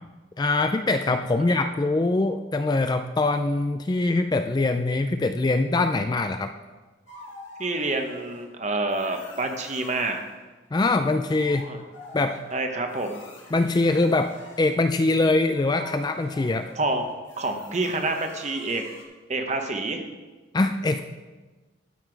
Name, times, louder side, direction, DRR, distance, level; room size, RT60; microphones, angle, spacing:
voice 1, 0.4-6.5 10.7-11.7 12.1-12.4 13.5-16.7 20.5-21.0, left 2 dB, 20° left, 8 dB, 0.3 m, -23 dB
sound 1, 7.1-8.5 8.9-10.3 10.8-19.0, left 2 dB, 75° left, 2.0 m, -46 dB
voice 2, 7.6-10.3 11.7-11.8 12.5-13.2 16.8-17.0 17.4-18.8 19.3-20.0, right 2 dB, 35° right, 5 dB, 1.0 m, -27 dB
12.5 x 5.8 x 4.6 m, 1.2 s
head